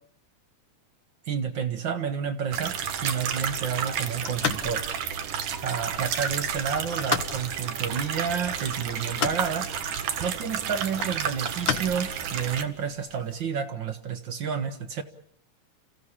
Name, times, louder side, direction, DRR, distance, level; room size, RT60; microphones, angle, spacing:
voice 1, 1.3-4.8 5.6-9.7 10.0-15.0, right 7 dB, 55° right, 9 dB, 1.3 m, -30 dB
sound 1, 2.5-12.6, right 8 dB, 85° right, 2.8 m, -31 dB
sound 2, 3.5-13.4, left 6 dB, 60° left, 1.3 m, -36 dB
29.5 x 15.5 x 8.7 m, 0.65 s
omnidirectional pair, 3.6 m